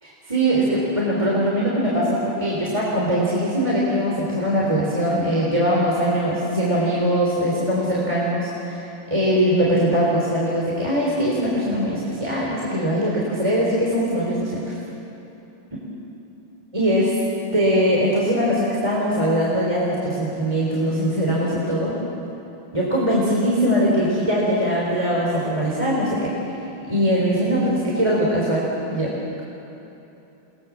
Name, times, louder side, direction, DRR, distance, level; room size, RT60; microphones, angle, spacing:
voice 1, 0.0-14.7 16.7-17.2 17.5-22.0 22.7-26.3 26.8-29.4, equal, 15° right, -5 dB, 3.9 m, -21 dB
28.5 x 22.0 x 7.4 m, 3.0 s
omnidirectional pair, 2.2 m